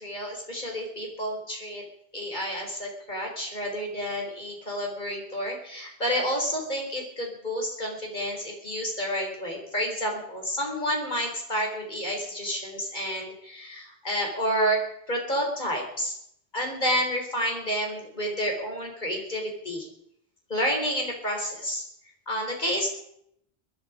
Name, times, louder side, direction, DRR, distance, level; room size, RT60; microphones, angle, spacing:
voice 1, 0.0-1.8 2.1-14.8 15.1-16.1 16.5-19.9 20.5-21.8 22.3-22.9, equal, 50° left, 1 dB, 4.3 m, -30 dB
20.5 x 12.0 x 5.1 m, 0.73 s
omnidirectional pair, 1.0 m